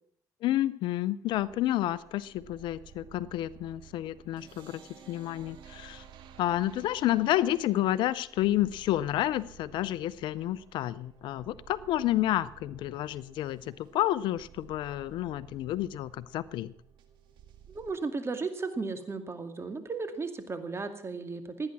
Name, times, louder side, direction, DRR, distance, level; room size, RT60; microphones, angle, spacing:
voice 1, 0.4-4.8 5.1-6.0 6.4-16.7, left 14 dB, 75° left, 0.6 m, -30 dB
sound 1, 1.3-17.9, right 9 dB, 75° right, 2.0 m, -54 dB
voice 2, 17.7-21.7, right 4 dB, 30° right, 2.3 m, -35 dB
17.0 x 9.8 x 6.1 m
supercardioid pair, 70°, 8 cm